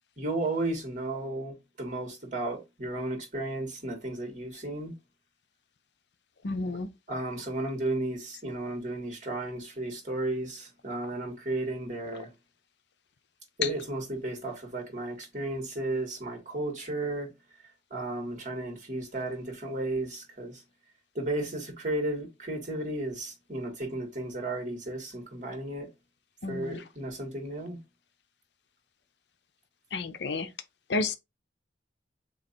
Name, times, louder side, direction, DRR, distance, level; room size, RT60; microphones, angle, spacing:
voice 1, 0.2-4.9 7.1-12.3 13.6-17.3 17.9-20.6 21.2-25.9 26.5-27.8, right 2 dB, 45° right, 1.7 m, -34 dB
voice 2, 6.4-6.9 13.6-13.7 26.4-26.8 29.9-30.5 30.9-31.2, left 4 dB, 70° left, 0.6 m, -30 dB
3.8 x 3.0 x 4.3 m
head